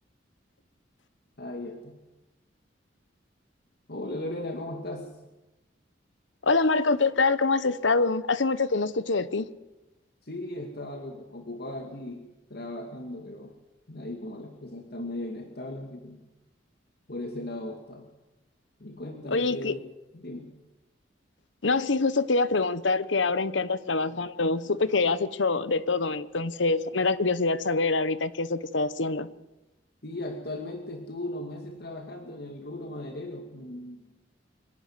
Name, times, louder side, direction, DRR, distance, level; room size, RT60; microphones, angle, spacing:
voice 1, 1.4-2.0 3.9-5.1 10.2-13.5 13.9-16.2 17.1-18.1 18.8-19.8 20.1-20.5 30.0-34.1, left 1 dB, 55° left, 3 dB, 2.4 m, -37 dB
voice 2, 6.4-9.5 19.3-19.8 21.6-29.3, left 3 dB, 75° left, 15 dB, 1.1 m, -25 dB
25.5 x 11.0 x 9.7 m, 1.0 s
head